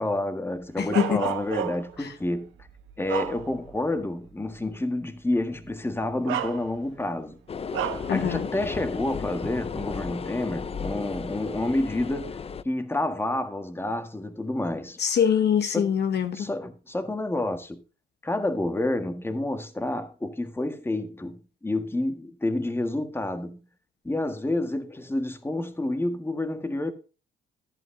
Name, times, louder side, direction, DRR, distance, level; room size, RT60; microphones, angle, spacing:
voice 1, 0.0-2.5 3.0-7.4 8.1-12.4 12.6-15.0 15.6-15.9 16.3-17.8 18.2-23.6 24.0-26.9, left 1 dB, 10° left, 1.5 m, -29 dB
voice 2, 0.8-1.2 8.1-8.5 15.0-16.5, left 8 dB, 60° left, 0.9 m, -24 dB
Bark, 0.9-2.0 2.6-3.8 4.3-4.4 5.6-5.7 6.3-7.0 7.7-8.2, right 10 dB, 90° right, 1.1 m, -32 dB
sound 1, 7.5-12.6, left 6 dB, 30° left, 0.5 m, -34 dB
11.5 x 10.5 x 2.7 m
cardioid pair, 90°, 20 cm